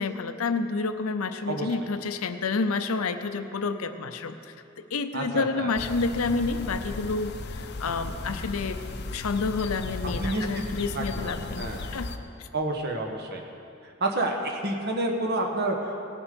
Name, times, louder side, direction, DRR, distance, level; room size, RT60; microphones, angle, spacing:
voice 1, 0.0-8.8 9.1-12.1 12.4-12.5, left 4 dB, 90° left, 9 dB, 0.6 m, -29 dB
voice 2, 5.1-5.7 10.0-10.6 10.9-11.8 12.5-13.4 14.0-16.1, right 2 dB, 50° right, 2 dB, 1.2 m, -29 dB
sound 1, 5.8-12.2, left 3 dB, 50° left, 0.6 m, -36 dB
18.0 x 7.2 x 5.2 m, 2.8 s
head